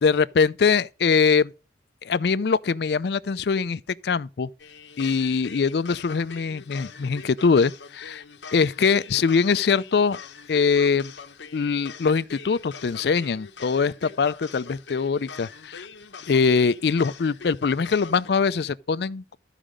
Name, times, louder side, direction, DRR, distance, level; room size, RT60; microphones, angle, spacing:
voice 1, 0.0-1.5 2.0-4.5 5.0-8.2 8.5-10.2 10.5-11.1 11.5-15.9 16.3-19.3, left 5 dB, 60° left, 0.4 m, -22 dB
sound 1, 4.6-18.3, left 5 dB, 85° left, 0.9 m, -43 dB
13.0 x 5.0 x 5.0 m
head